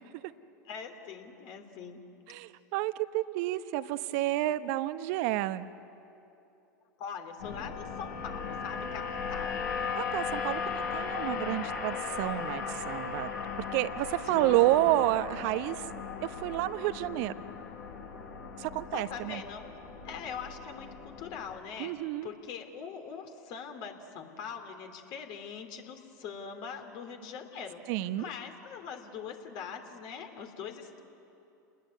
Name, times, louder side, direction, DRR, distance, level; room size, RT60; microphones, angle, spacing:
voice 1, 0.7-2.0 7.0-9.0 9.3-9.5 14.2-15.0 18.9-19.7 20.0-21.9 22.2-27.8 28.2-31.0, left 6 dB, 55° left, 5 dB, 3.2 m, -42 dB
voice 2, 2.3-5.7 10.0-13.3 13.7-15.8 16.2-17.3 18.6-19.4 21.8-22.3 27.9-28.3, right 16 dB, 60° right, 13 dB, 1.0 m, -30 dB
sound 1, 7.4-21.6, left 5 dB, 75° left, 4.0 m, -37 dB
29.0 x 20.0 x 9.4 m, 2.8 s
hypercardioid pair, 90°, 10 cm